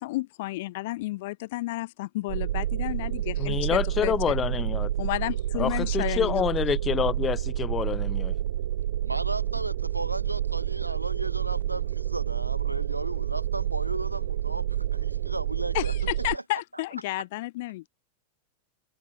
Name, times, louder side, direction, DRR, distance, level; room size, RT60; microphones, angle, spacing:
voice 1, 0.0-4.4 5.0-6.5 15.7-17.9, left 19 dB, 50° left, 1.4 m, -32 dB
sound 1, 2.3-16.4, right 12 dB, 60° right, 1.1 m, -29 dB
voice 2, 3.4-4.9 5.6-8.4, left 8 dB, 25° left, 0.4 m, -27 dB
voice 3, 9.0-15.9 16.3-16.6, right 2 dB, 85° right, 4.9 m, -35 dB
figure-of-eight pair, 90°, 0 cm